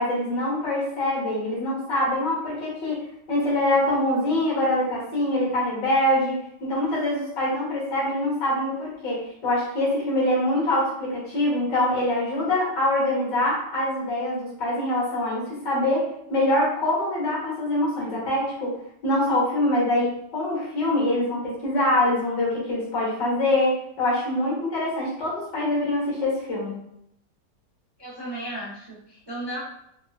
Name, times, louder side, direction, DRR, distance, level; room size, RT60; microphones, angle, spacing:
voice 1, 0.0-6.4 6.7-18.7 19.0-26.8, left 1 dB, 75° left, -6 dB, 2.2 m, -24 dB
voice 2, 28.0-29.6, right 1 dB, 30° right, -7 dB, 0.4 m, -34 dB
4.6 x 2.4 x 2.6 m, 0.76 s
omnidirectional pair, 1.9 m